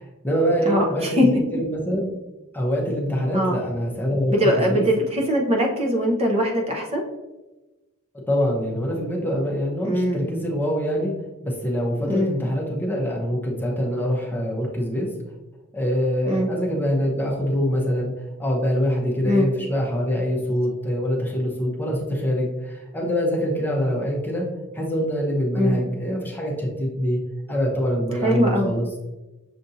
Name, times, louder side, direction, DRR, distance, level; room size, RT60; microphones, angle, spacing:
voice 1, 0.0-2.1 2.5-4.8 8.3-11.1 11.4-15.1 15.7-18.1 18.4-24.5 24.7-27.2 27.5-28.9, equal, 10° left, -2 dB, 0.7 m, -24 dB
voice 2, 0.7-1.3 3.3-3.6 4.3-7.0 9.8-10.3 12.1-12.3 16.3-16.5 19.2-19.5 25.5-25.8 28.2-28.7, equal, 30° right, -1 dB, 0.7 m, -21 dB
6.6 x 2.5 x 2.7 m, 1.1 s
head